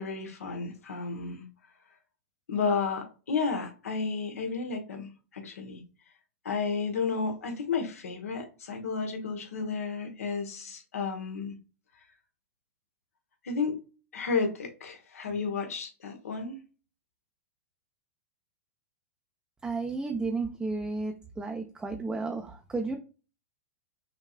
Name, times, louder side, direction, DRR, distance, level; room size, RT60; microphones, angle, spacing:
voice 1, 0.0-1.5 2.5-5.8 6.4-11.5 13.4-13.8 14.1-16.6, left 5 dB, 80° left, 4 dB, 1.3 m, -32 dB
voice 2, 19.6-23.0, right 3 dB, 10° right, 3 dB, 0.6 m, -33 dB
5.7 x 3.0 x 2.5 m, 0.34 s
hypercardioid pair, 110°, 8 cm